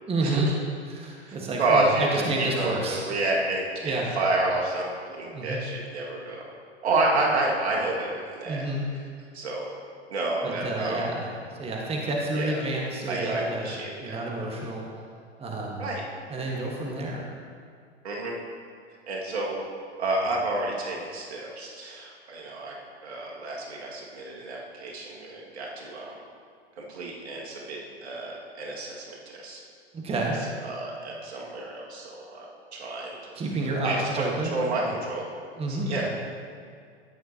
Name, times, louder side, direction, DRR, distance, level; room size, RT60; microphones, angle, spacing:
voice 1, 0.1-0.5 0.9-3.0 3.8-4.1 5.3-5.6 8.4-8.9 10.4-11.3 11.6-13.7 14.0-14.8 15.4-15.8 16.3-17.3 29.9-30.4 33.3-34.5 34.8-34.9 35.6-36.1, right 2 dB, 15° right, -1 dB, 1.4 m, -29 dB
voice 2, 1.3-6.4 6.8-8.7 9.3-9.7 10.1-11.1 12.3-12.6 13.1-14.2 15.8-16.0 18.0-18.4 19.0-19.6 20.0-22.7 23.0-26.2 26.8-29.6 30.6-33.4 33.8-36.1, right 2 dB, 70° right, -3 dB, 2.0 m, -29 dB
14.0 x 10.0 x 2.8 m, 2.1 s
figure-of-eight pair, 95°, 34 cm